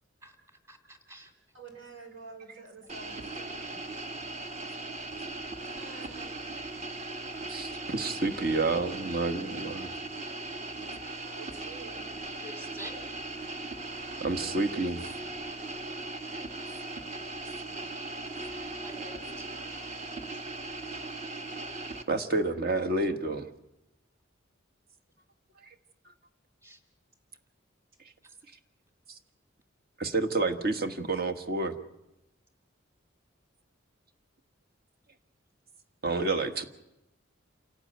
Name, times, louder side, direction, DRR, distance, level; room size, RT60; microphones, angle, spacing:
voice 1, 0.2-1.3 12.4-12.9 18.8-19.4 20.3-20.4 26.6-26.8 28.2-28.3, equal, 15° right, 5 dB, 2.5 m, -47 dB
voice 2, 1.5-4.8 5.8-6.5 11.2-12.1, right 4 dB, 80° right, 4 dB, 4.8 m, -50 dB
sound 1, 2.9-22.0, right 2 dB, 35° right, 1.3 m, -39 dB
voice 3, 7.5-9.9 14.2-15.0 18.5-18.6 22.1-23.5 30.0-31.7 36.0-36.7, right 2 dB, 50° right, 7 dB, 1.5 m, -29 dB
28.0 x 12.0 x 9.1 m, 0.93 s
head